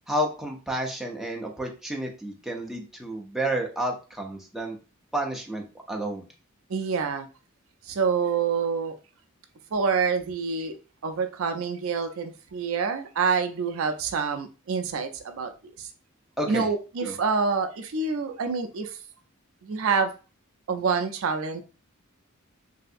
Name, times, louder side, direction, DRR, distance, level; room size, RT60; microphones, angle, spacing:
voice 1, 0.1-4.8 5.1-6.3 16.4-16.7 17.0-17.1, right 1 dB, ahead, -1 dB, 0.5 m, -30 dB
voice 2, 6.7-7.3 7.8-8.9 9.7-10.8 11.0-15.9 16.5-19.0 19.6-20.1 20.7-21.6, right 5 dB, 65° right, 6 dB, 0.4 m, -27 dB
3.2 x 2.7 x 2.5 m, 0.33 s
head